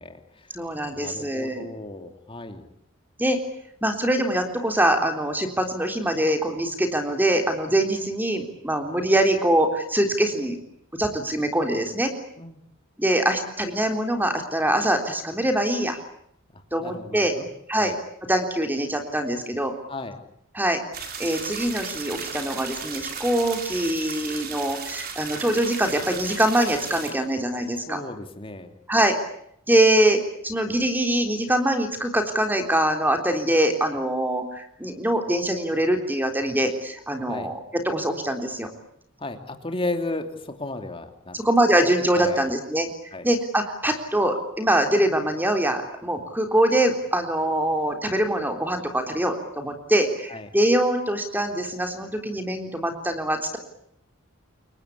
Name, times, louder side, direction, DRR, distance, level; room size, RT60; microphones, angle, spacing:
voice 1, 0.0-0.5 0.9-2.7 12.4-12.6 16.8-17.5 17.8-18.0 19.9-20.2 27.9-28.7 37.3-37.5 39.2-41.4 42.1-42.5 43.1-43.3 50.3-50.5, left 2 dB, 25° left, 6 dB, 3.0 m, -34 dB
voice 2, 0.5-1.7 3.2-3.4 3.8-10.6 10.9-12.1 13.0-16.0 16.7-17.3 17.7-17.9 18.3-19.7 20.5-20.8 21.2-28.0 28.9-29.1 29.7-38.7 41.3-42.9 43.2-53.6, right 1 dB, 10° right, 5 dB, 3.6 m, -23 dB
sound 1, 20.9-27.1, right 6 dB, 45° right, 4.4 m, -35 dB
29.0 x 23.0 x 8.6 m, 0.72 s
head